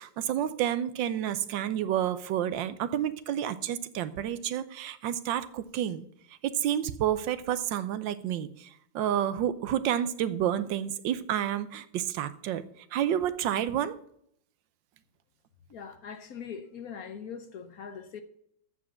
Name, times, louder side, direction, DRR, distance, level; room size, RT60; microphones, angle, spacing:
voice 1, 0.0-6.0 6.4-8.7 8.9-12.6 12.9-14.0, right 10 dB, 75° right, 1.4 m, -30 dB
voice 2, 15.7-18.2, left 6 dB, 60° left, 1.1 m, -41 dB
8.5 x 7.2 x 7.4 m
omnidirectional pair, 2.1 m